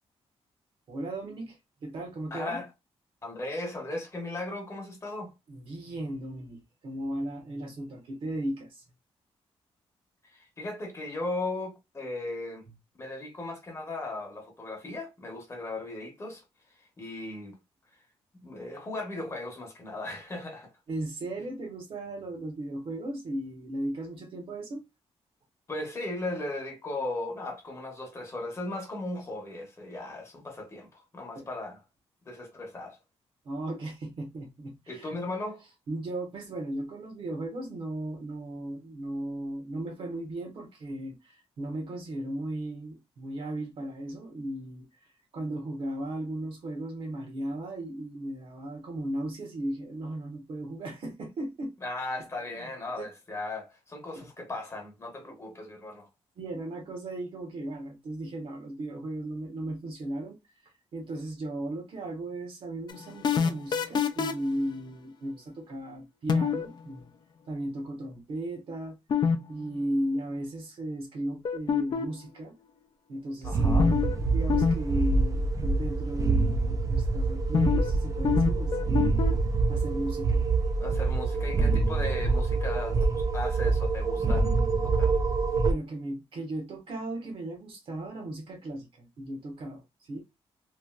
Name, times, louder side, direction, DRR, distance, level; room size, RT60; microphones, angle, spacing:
voice 1, 0.9-2.6 5.5-8.8 20.9-24.8 31.3-31.5 33.4-35.2 35.9-44.9 45.3-51.7 52.2-52.3 52.5-53.1 54.1-54.3 56.4-60.4 60.9-67.1 67.5-69.0 69.5-72.5 73.1-79.3 79.7-80.4 81.7-81.8 85.6-89.8 90.1-90.2, right 1 dB, 55° right, 1.1 m, -36 dB
voice 2, 2.3-2.7 3.2-5.3 10.2-12.7 13.0-16.4 17.0-17.6 18.4-20.7 25.7-31.8 32.2-33.0 34.9-35.6 51.8-56.1 73.4-73.9 80.8-84.5 84.8-85.2, left 2 dB, 25° left, 0.9 m, -37 dB
sound 1, 62.9-64.5 66.3-66.7 69.1-69.4 69.6-69.7 71.4-72.2 73.8-74.2 74.5-74.7 75.0-75.1 77.5-77.9 78.2-79.3, left 6 dB, 45° left, 0.4 m, -25 dB
sound 2, 73.4-85.7, right 3 dB, 30° right, 0.4 m, -26 dB
3.0 x 2.5 x 2.3 m
wide cardioid pair, 150°, 11 cm